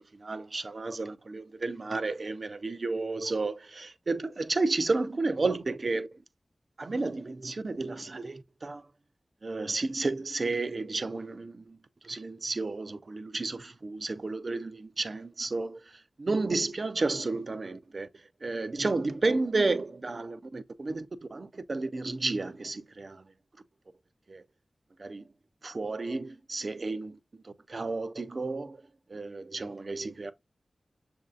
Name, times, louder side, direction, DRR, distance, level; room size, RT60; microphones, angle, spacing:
voice 1, 0.3-6.1 6.8-8.8 9.4-11.8 12.0-15.8 16.3-18.1 18.4-23.2 24.3-24.4 25.0-25.2 25.6-27.2 27.7-28.8 29.1-30.3, right 3 dB, 60° right, 0.4 m, -32 dB
6.4 x 2.6 x 2.3 m
cardioid pair, 50°, 0 cm